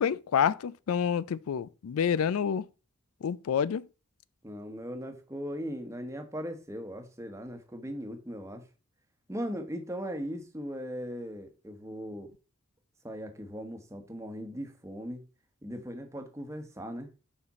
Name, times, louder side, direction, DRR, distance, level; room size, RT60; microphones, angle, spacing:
voice 1, 0.0-2.7 3.2-3.9, left 7 dB, 90° left, 0.4 m, -28 dB
voice 2, 4.4-8.6 9.3-12.3 13.0-15.2 15.6-17.1, equal, 15° right, 1.0 m, -38 dB
7.1 x 5.1 x 4.1 m
head